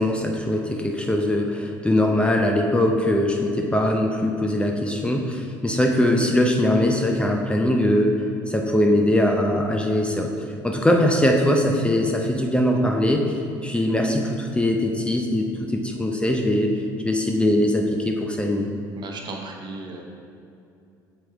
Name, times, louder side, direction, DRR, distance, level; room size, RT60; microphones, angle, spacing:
voice 1, 0.0-10.3 10.6-13.3 13.6-16.7 17.0-18.7, left 1 dB, 10° left, 1 dB, 0.6 m, -21 dB
voice 2, 19.0-20.0, right 2 dB, 45° right, 1 dB, 0.9 m, -35 dB
6.2 x 4.5 x 3.3 m, 2.6 s
hypercardioid pair, 70°, 10 cm